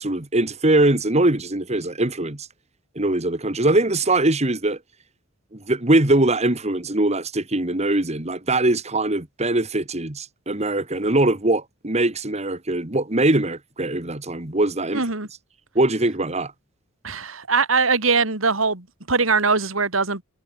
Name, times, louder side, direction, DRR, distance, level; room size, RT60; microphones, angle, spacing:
voice 1, 0.0-2.5 3.0-4.8 5.5-15.1 15.8-16.5, right 2 dB, 35° right, 2.1 m, -22 dB
voice 2, 14.9-15.3 17.0-20.2, right 4 dB, 85° right, 3.2 m, -21 dB
head